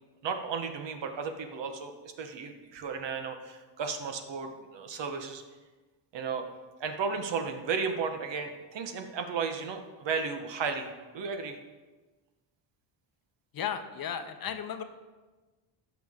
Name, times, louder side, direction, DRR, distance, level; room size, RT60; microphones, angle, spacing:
voice 1, 0.2-5.4 6.1-6.4 6.8-11.6, right 5 dB, 60° right, 6 dB, 1.2 m, -34 dB
voice 2, 13.5-14.8, left 8 dB, 45° left, 8 dB, 0.7 m, -35 dB
15.0 x 6.2 x 3.6 m, 1.3 s
cardioid pair, 145°, 50 cm